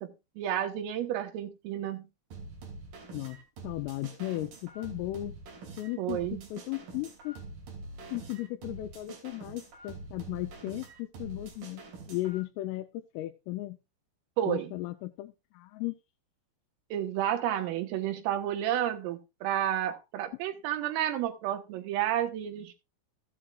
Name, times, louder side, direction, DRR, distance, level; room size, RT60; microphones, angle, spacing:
voice 1, 0.0-2.1 6.0-6.5 14.4-14.7 16.9-22.7, right 11 dB, 85° right, 6 dB, 3.9 m, -31 dB
sound 1, 2.3-12.4, right 3 dB, 50° right, 3.7 m, -45 dB
voice 2, 3.6-5.4 5.8-7.4 8.1-11.8 12.1-13.8 14.5-15.9, left 17 dB, 85° left, 5 dB, 3.2 m, -36 dB
15.0 x 8.7 x 2.4 m, 0.25 s
omnidirectional pair, 5.8 m